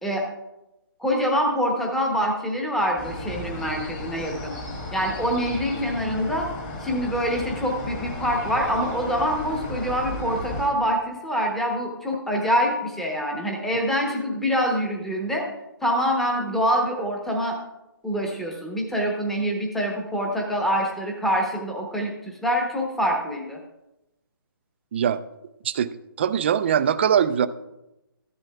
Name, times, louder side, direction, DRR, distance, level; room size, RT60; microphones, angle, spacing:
voice 1, 1.0-4.6 4.9-6.5 6.8-15.5 15.8-17.6 18.0-23.6, equal, ahead, 0 dB, 0.9 m, -25 dB
sound 1, 3.0-10.7, left 1 dB, 30° left, 1.8 m, -34 dB
voice 2, 26.2-27.5, right 8 dB, 30° right, 12 dB, 0.4 m, -21 dB
13.5 x 10.5 x 2.3 m, 0.93 s
hypercardioid pair, 160°, 12 cm